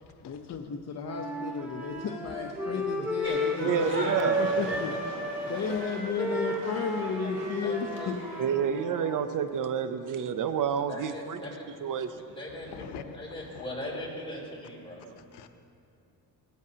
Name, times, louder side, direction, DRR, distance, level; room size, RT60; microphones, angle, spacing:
voice 1, 0.2-4.9 5.5-8.2, left 6 dB, 40° left, 2 dB, 0.8 m, -33 dB
Wind instrument woodwind instrument, 1.0-9.2, equal, 5° right, 1.8 m, -33 dB
sound 1, 3.2-8.4, right 1 dB, 30° right, 2.6 m, -40 dB
voice 2, 3.6-4.4 8.4-11.4 11.8-12.2 15.0-15.1, right 8 dB, 55° right, 9 dB, 0.6 m, -29 dB
voice 3, 4.4-4.8 7.6-8.1 10.8-11.6 12.3-12.8 13.1-15.0, left 1 dB, 15° left, -4 dB, 3.7 m, -40 dB
voice 4, 12.7-13.6 15.2-15.5, left 7 dB, 85° left, 8 dB, 0.8 m, -44 dB
18.0 x 13.5 x 2.8 m, 2.6 s
cardioid pair, 135°, 39 cm